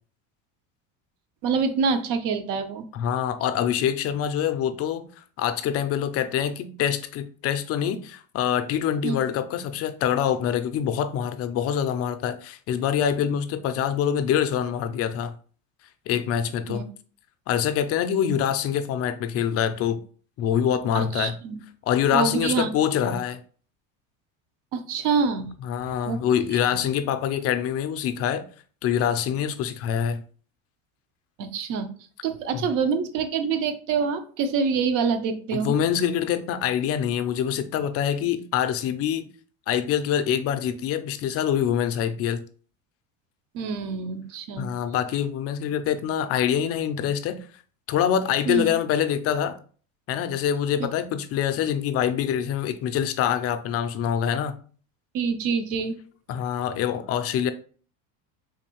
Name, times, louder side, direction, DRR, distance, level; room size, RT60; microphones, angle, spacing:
voice 1, 1.4-2.8 9.0-9.2 16.7-16.8 20.9-21.6 22.1-22.7 24.7-25.5 26.1-26.2 26.5-26.8 31.4-31.9 32.2-35.7 43.5-44.7 48.5-48.7 55.1-56.0, right 5 dB, 55° right, 0.7 m, -26 dB
voice 2, 2.9-5.0 5.4-15.3 16.1-16.8 17.5-20.0 20.4-21.3 21.8-23.4 25.6-28.4 28.8-30.2 32.5-32.6 35.5-39.3 39.7-42.4 44.6-47.4 47.9-49.6 50.1-54.5 56.3-57.5, left 9 dB, 40° left, 0.4 m, -25 dB
3.7 x 2.6 x 2.9 m
supercardioid pair, 120°, 39 cm